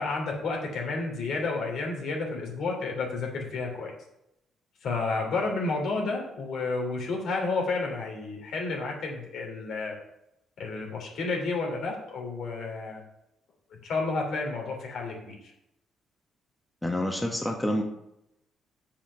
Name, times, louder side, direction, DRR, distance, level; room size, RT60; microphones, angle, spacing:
voice 1, 0.0-3.9 4.8-9.9 10.6-13.0 13.8-15.3, left 3 dB, 70° left, -1 dB, 3.2 m, -31 dB
voice 2, 16.8-17.8, left 1 dB, 10° left, 2 dB, 1.2 m, -28 dB
7.0 x 5.7 x 6.7 m, 0.83 s
cardioid pair, 90°, 0 cm